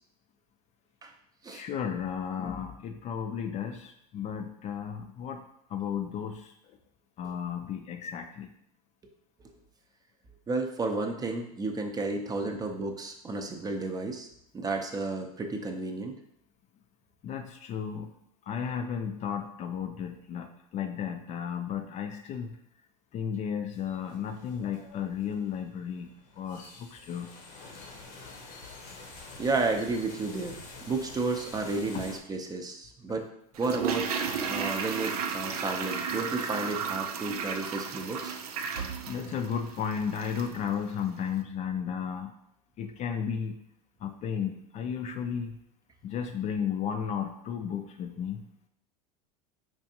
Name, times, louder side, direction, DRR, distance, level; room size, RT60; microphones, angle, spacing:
voice 1, 1.5-5.4 5.7-6.5 7.2-8.5 12.4-12.6 17.2-18.1 18.5-22.6 23.1-26.1 26.4-27.3 31.9-32.0 33.1-33.2 39.1-42.3 42.8-43.6 44.0-45.6 46.0-48.4, left 7 dB, 40° left, 6 dB, 0.4 m, -34 dB
voice 2, 10.5-14.3 14.5-16.2 29.4-30.6 30.9-33.3 33.6-34.1 34.5-38.4, right 3 dB, 20° right, 4 dB, 0.5 m, -32 dB
sound 1, 23.7-32.2, left 3 dB, 70° left, 0.8 m, -48 dB
Toilet flush, 33.5-40.6 40.9-41.0, right 6 dB, 90° right, 0.4 m, -34 dB
4.6 x 2.5 x 2.7 m, 0.74 s
hypercardioid pair, 90°, 19 cm